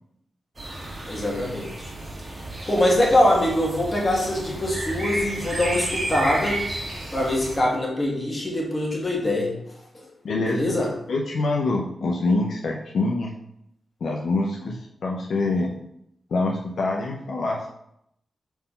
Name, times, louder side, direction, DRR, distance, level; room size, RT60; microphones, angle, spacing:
sound 1, 0.6-7.6, right 1 dB, 30° right, 1.6 m, -32 dB
voice 1, 1.1-1.9 2.7-6.6 7.1-9.6 9.9-10.1 10.4-10.9, left 1 dB, 30° left, -2 dB, 1.8 m, -23 dB
voice 2, 10.2-10.8 11.1-13.3 14.0-15.7 16.3-17.7, left 2 dB, 75° left, -1 dB, 0.6 m, -25 dB
4.5 x 3.8 x 5.5 m, 0.77 s
cardioid pair, 85°, 0 cm